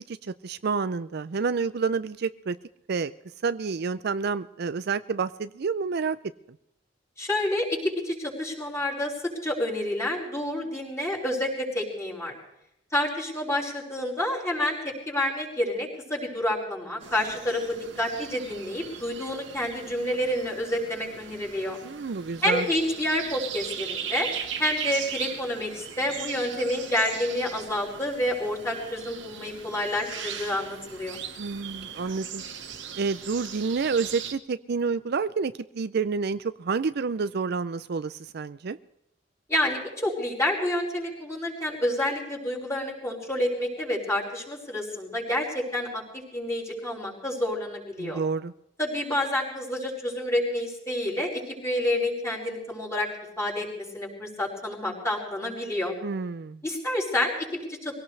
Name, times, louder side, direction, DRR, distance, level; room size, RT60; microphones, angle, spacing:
voice 1, 0.1-2.6 2.9-3.1 3.4-6.2 21.8-22.7 31.4-32.4 33.0-38.8 48.0-48.5 56.0-56.6, right 5 dB, 60° right, 13 dB, 0.5 m, -29 dB
voice 2, 7.2-12.3 12.9-21.8 22.4-24.3 24.6-31.2 39.5-48.2 48.8-53.1 53.4-55.9 56.6-58.0, left 1 dB, 15° left, -4 dB, 5.3 m, -29 dB
sound 1, 17.0-34.3, right 8 dB, 75° right, 1.8 m, -39 dB
23.5 x 17.5 x 3.3 m, 0.80 s
head